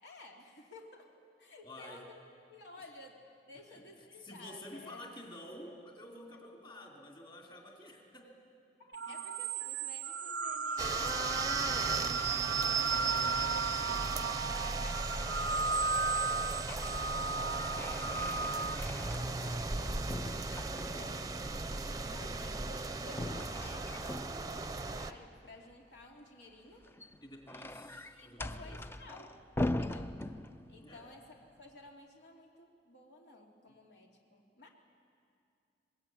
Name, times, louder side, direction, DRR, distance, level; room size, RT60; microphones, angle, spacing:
voice 1, 0.0-2.2 2.5-5.0 8.8-13.4 13.9-21.3 22.0-26.9 28.1-29.4 29.6-30.2 30.7-34.7, left 2 dB, 75° left, 0 dB, 2.8 m, -55 dB
voice 2, 1.6-2.1 3.7-3.8 4.2-8.4 9.1-9.2 13.8-14.1 21.7-22.5 27.2-28.8 30.8-31.0, left 1 dB, 30° left, 0 dB, 3.1 m, -50 dB
sound 1, 8.9-18.8, right 4 dB, 80° right, 0.6 m, -34 dB
sound 2, 10.8-25.1, right 3 dB, 20° right, 0.7 m, -37 dB
sound 3, 16.3-17.0 17.3-19.8 20.1-21.3 23.1-24.7 26.7-30.9, left 1 dB, 15° left, 0.5 m, -41 dB
23.5 x 20.5 x 8.9 m, 2.4 s
head